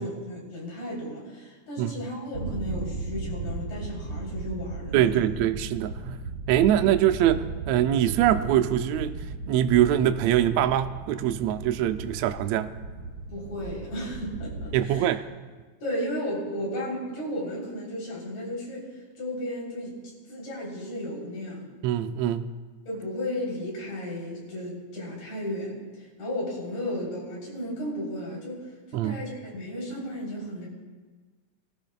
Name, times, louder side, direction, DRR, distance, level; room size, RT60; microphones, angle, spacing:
voice 1, 0.0-5.3 13.3-15.1 15.8-19.9 20.3-21.7 22.9-28.6 28.9-30.7, left 1 dB, 65° left, -4 dB, 4.9 m, -34 dB
sound 1, 2.3-14.8, right 3 dB, 55° right, 1.5 m, -36 dB
voice 2, 4.9-6.2 6.5-9.2 9.5-12.7 14.7-15.3 21.8-22.5 28.9-29.2, right 11 dB, 85° right, 9 dB, 1.6 m, -23 dB
23.0 x 13.5 x 2.3 m, 1.4 s
omnidirectional pair, 3.6 m